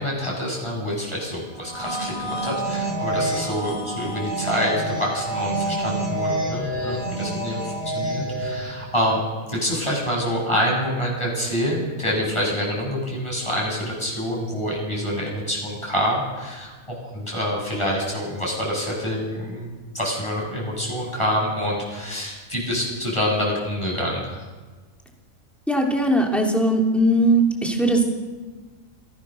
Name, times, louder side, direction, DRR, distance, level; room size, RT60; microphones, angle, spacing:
voice 1, 0.0-9.2 9.5-24.4, equal, 20° left, -3 dB, 7.9 m, -26 dB
sound 1, 1.5-8.9, right 1 dB, 45° left, 5.3 m, -28 dB
voice 2, 25.7-28.0, right 1 dB, ahead, 0 dB, 3.5 m, -19 dB
26.5 x 17.0 x 6.6 m, 1.3 s
omnidirectional pair, 1.4 m